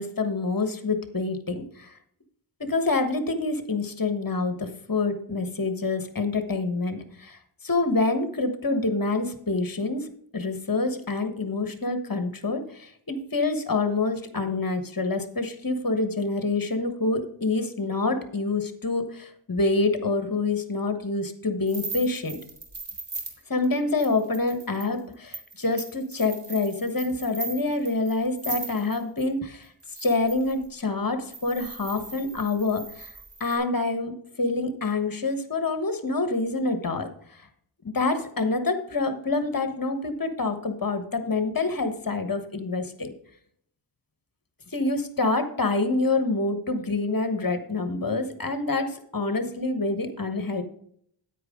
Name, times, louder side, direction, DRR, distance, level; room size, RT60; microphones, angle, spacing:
voice 1, 0.0-2.0 2.6-7.4 7.6-22.4 23.5-29.7 30.0-33.1 33.4-34.1 34.4-37.1 37.9-43.1 44.7-50.6, left 3 dB, 45° left, 8 dB, 1.3 m, -27 dB
sound 1, 21.7-29.3 29.8-30.7 31.3-33.6, right 3 dB, 60° right, 2.2 m, -39 dB
9.3 x 9.2 x 3.7 m, 0.66 s
wide cardioid pair, 70°, 49 cm